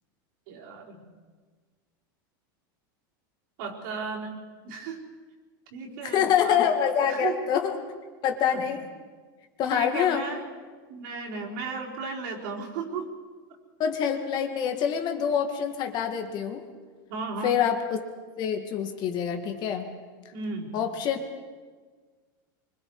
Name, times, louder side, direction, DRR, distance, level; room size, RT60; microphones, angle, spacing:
voice 1, 0.5-1.1 3.6-4.4 4.6-5.0 5.7-6.7 7.1-7.4 8.5-8.6 9.7-10.4 10.9-13.1 17.1-17.6 20.3-20.8, right 4 dB, 65° right, -2 dB, 4.6 m, -35 dB
voice 2, 6.1-7.8 8.2-8.8 9.6-10.2 13.8-16.6 17.4-18.0 18.4-19.9 20.7-21.3, left 8 dB, 40° left, 5 dB, 2.1 m, -26 dB
24.5 x 24.5 x 4.9 m, 1.5 s
supercardioid pair, 140°, 11 cm